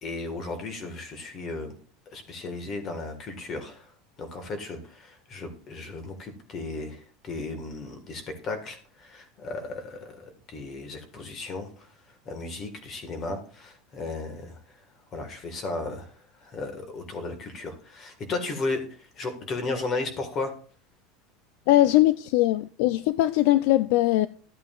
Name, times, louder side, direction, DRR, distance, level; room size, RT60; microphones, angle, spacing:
voice 1, 0.0-1.8 2.1-3.9 4.2-11.9 12.2-14.8 15.1-20.6, left 3 dB, 25° left, 1.6 m, -35 dB
voice 2, 21.7-24.3, left 15 dB, 55° left, 0.3 m, -21 dB
13.0 x 8.3 x 2.4 m
supercardioid pair, 175°, 0 cm